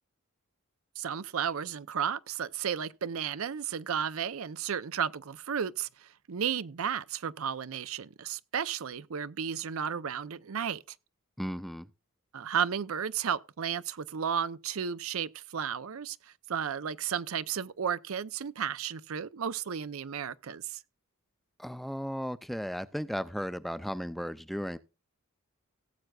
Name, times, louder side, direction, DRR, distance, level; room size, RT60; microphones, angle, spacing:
voice 1, 1.0-10.8 12.3-20.8, right 7 dB, 75° right, 0.5 m, -33 dB
voice 2, 11.4-11.9 21.6-24.8, equal, ahead, 0.4 m, -35 dB
18.0 x 7.8 x 2.3 m
head